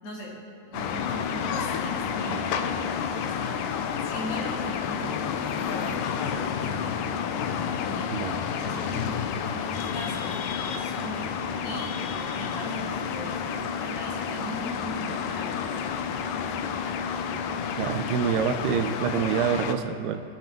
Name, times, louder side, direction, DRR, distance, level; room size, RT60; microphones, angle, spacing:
voice 1, 0.0-3.6 4.0-7.5 7.8-8.1 8.5-17.0, equal, 60° left, -5 dB, 4.7 m, -40 dB
sound 1, 0.7-19.7, left 7 dB, 80° left, 1.9 m, -30 dB
voice 2, 17.8-20.2, right 8 dB, 80° right, 8 dB, 2.7 m, -26 dB
23.5 x 9.7 x 4.5 m, 2.8 s
omnidirectional pair, 4.7 m